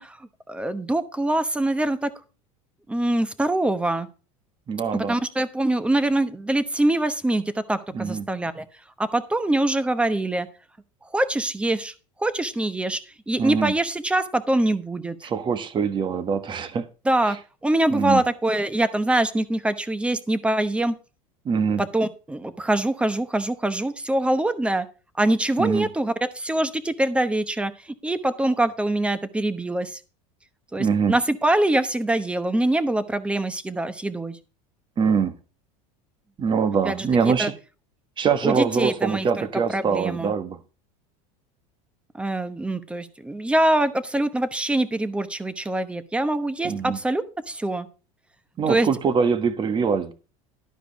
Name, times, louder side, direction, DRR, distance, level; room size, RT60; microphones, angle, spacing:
voice 1, 0.0-2.1 2.9-4.1 4.9-8.6 9.0-10.5 11.0-11.9 12.2-13.0 13.3-15.3 17.0-17.4 17.6-21.0 21.8-24.9 25.2-30.0 30.7-34.4 36.8-37.1 37.4-37.5 38.4-39.5 39.7-40.3 42.1-47.9 48.7-48.9, right 1 dB, 5° right, 1.0 m, -24 dB
voice 2, 4.7-5.2 7.9-8.3 13.4-13.7 15.2-16.9 17.9-18.2 21.4-21.8 25.6-25.9 30.8-31.2 35.0-35.3 36.4-37.5 38.2-40.6 46.6-47.0 48.6-50.1, right 6 dB, 30° right, 1.3 m, -23 dB
12.0 x 5.0 x 6.1 m
supercardioid pair, 120°, 17 cm